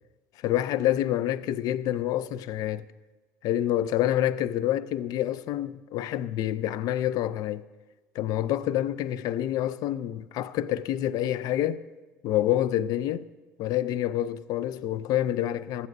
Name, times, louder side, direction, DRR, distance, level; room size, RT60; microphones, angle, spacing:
voice 1, 0.4-2.8 3.4-7.7 8.1-11.8 12.2-13.3 13.6-15.9, left 12 dB, 55° left, 0.4 m, -27 dB
15.0 x 9.7 x 2.6 m
hypercardioid pair, 75°, 8 cm